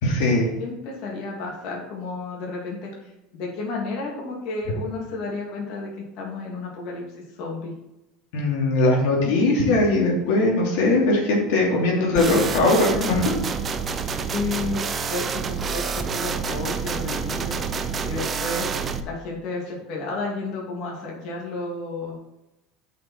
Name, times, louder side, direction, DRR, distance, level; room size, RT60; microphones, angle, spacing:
voice 1, 0.0-0.5 8.3-13.3, left 2 dB, 75° left, -2 dB, 2.8 m, -20 dB
voice 2, 0.6-2.9 3.3-7.1 7.4-7.7 11.8-13.1 14.3-17.6 18.0-18.7 19.0-22.2, left 3 dB, 55° left, -3 dB, 2.7 m, -32 dB
sound 1, 12.2-19.0, right 5 dB, 25° right, 0.6 m, -28 dB
9.8 x 5.9 x 4.5 m, 0.90 s
cardioid pair, 160°, 0 cm